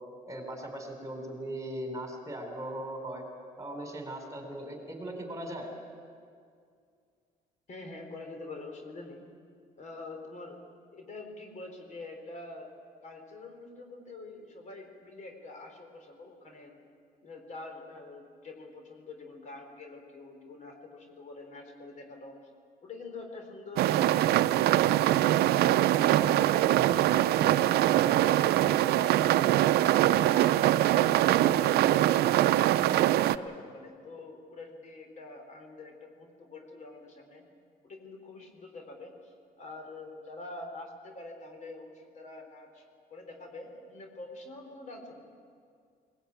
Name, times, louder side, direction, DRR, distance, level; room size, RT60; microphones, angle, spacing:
voice 1, 0.3-3.2 3.6-5.7, right 1 dB, 20° right, 3 dB, 4.3 m, -39 dB
voice 2, 7.7-9.2 9.8-10.6 10.9-12.7 13.0-16.7 17.2-22.4 22.8-24.3 24.5-25.7 26.1-30.6 31.0-32.1 32.7-37.4 37.8-42.8 43.1-45.2, left 2 dB, 45° left, 4 dB, 4.1 m, -46 dB
sound 1, 23.8-33.4, right 13 dB, 70° right, 0.6 m, -23 dB
20.5 x 19.5 x 9.0 m, 2.2 s
cardioid pair, 110°, 17 cm